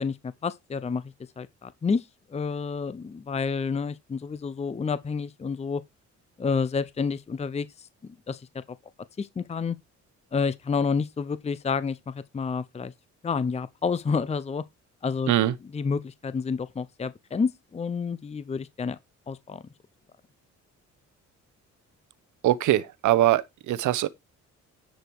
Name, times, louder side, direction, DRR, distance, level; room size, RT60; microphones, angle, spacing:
voice 1, 0.0-5.8 6.4-7.9 8.3-8.6 9.2-9.8 10.3-12.9 13.2-14.6 15.0-15.3 15.7-19.0 19.3-19.6, left 5 dB, 20° left, 0.6 m, -29 dB
voice 2, 22.4-24.1, right 14 dB, 80° right, 0.9 m, -22 dB
10.0 x 5.1 x 4.7 m
cardioid pair, 90°, 30 cm